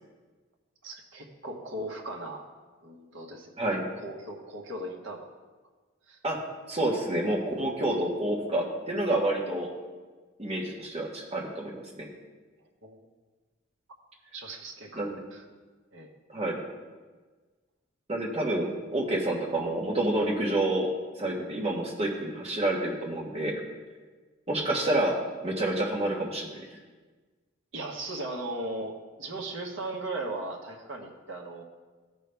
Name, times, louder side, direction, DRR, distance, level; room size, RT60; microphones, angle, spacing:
voice 1, 0.8-2.5 2.8-3.5 4.0-5.3 6.1-6.2 12.8-13.0 14.3-15.4 15.9-16.1 27.7-31.6, right 2 dB, 60° right, 0 dB, 1.2 m, -37 dB
voice 2, 6.7-9.7 10.4-12.1 14.9-15.2 16.3-16.6 18.1-20.9 21.2-23.6 24.5-25.2 25.4-26.6, right 1 dB, 30° right, -1 dB, 1.4 m, -28 dB
14.0 x 5.3 x 3.4 m, 1.3 s
head